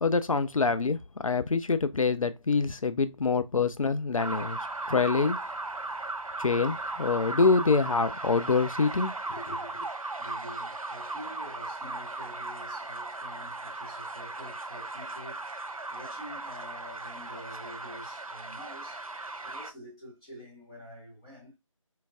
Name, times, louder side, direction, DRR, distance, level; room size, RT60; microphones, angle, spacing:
voice 1, 0.0-4.6 4.9-5.4 6.4-9.9, left 4 dB, 75° left, 0.4 m, -26 dB
sound 1, 4.2-19.7, right 2 dB, 90° right, 0.5 m, -37 dB
voice 2, 9.8-19.1 19.4-21.6, equal, 10° left, 1.0 m, -47 dB
4.4 x 2.3 x 2.4 m
figure-of-eight pair, 165°, 17 cm